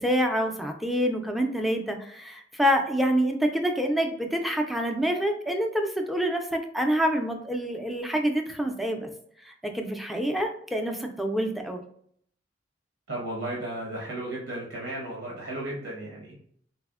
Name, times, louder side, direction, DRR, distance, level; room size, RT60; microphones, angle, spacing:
voice 1, 0.0-9.1 9.4-11.8, equal, ahead, 3 dB, 0.4 m, -27 dB
voice 2, 13.1-16.4, right 1 dB, 80° right, -5 dB, 0.9 m, -34 dB
4.0 x 2.1 x 2.3 m, 0.64 s
head